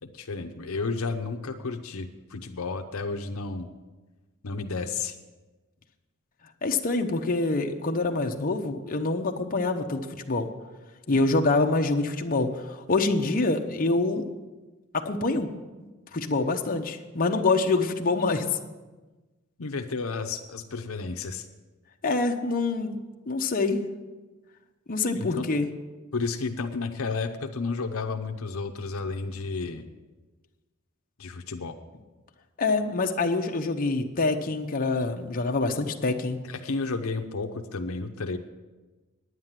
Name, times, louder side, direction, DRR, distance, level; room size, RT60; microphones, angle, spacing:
voice 1, 0.0-3.7 4.4-5.2 19.6-21.5 25.1-25.5 26.1-29.8 31.2-31.8 36.4-38.4, left 4 dB, 70° left, 6 dB, 0.7 m, -32 dB
voice 2, 6.6-10.5 11.1-14.2 14.9-15.5 15.8-18.5 22.0-23.0 23.3-23.8 24.9-25.7 32.6-36.4, left 3 dB, 40° left, 3 dB, 0.8 m, -26 dB
9.6 x 9.6 x 7.4 m, 1.2 s
head